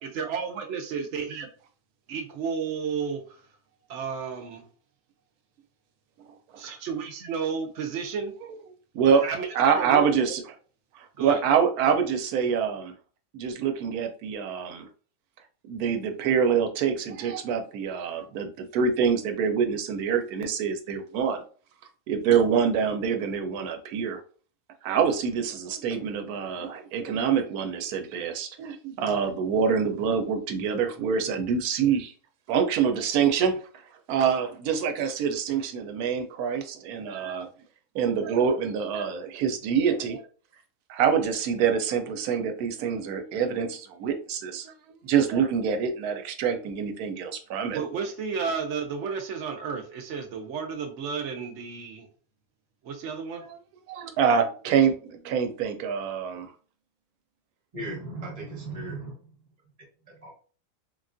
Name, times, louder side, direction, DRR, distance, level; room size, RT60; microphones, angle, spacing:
voice 1, 0.0-1.5 2.1-3.5 3.9-4.7 6.6-8.3 9.1-10.4 11.1-11.4 47.7-52.1 52.8-53.4, right 6 dB, 65° right, 5 dB, 0.8 m, -32 dB
voice 2, 9.6-10.4 10.9-12.9 13.3-14.9 15.7-21.4 22.1-24.2 24.8-32.1 32.5-33.6 34.1-37.5 37.9-40.2 40.9-44.7 45.0-47.8 53.5-53.6 53.9-56.5, right 7 dB, 85° right, 6 dB, 1.1 m, -25 dB
voice 3, 57.7-59.3 60.1-60.3, right 2 dB, 30° right, -3 dB, 1.0 m, -37 dB
3.4 x 2.3 x 2.5 m, 0.41 s
omnidirectional pair, 1.5 m